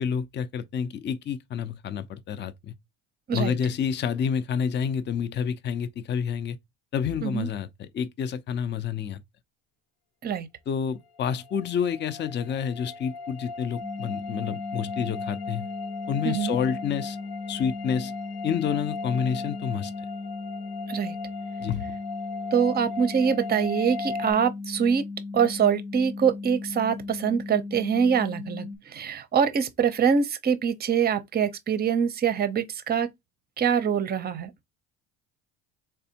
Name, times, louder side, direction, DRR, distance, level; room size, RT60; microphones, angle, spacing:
voice 1, 0.0-2.7 3.3-6.6 6.9-9.2 10.7-15.7 16.1-17.2 17.5-18.1 18.4-19.9 21.6-22.0, left 7 dB, 30° left, 0.5 m, -29 dB
sound 1, 11.2-24.3, left 3 dB, 60° left, 0.8 m, -37 dB
sound 2, 13.8-28.8, left 3 dB, 90° left, 0.9 m, -37 dB
voice 2, 16.2-16.6 20.9-21.1 22.5-25.0 25.3-33.1 33.6-34.5, right 7 dB, 25° right, 0.6 m, -24 dB
3.4 x 3.3 x 2.8 m
supercardioid pair, 85°, 38 cm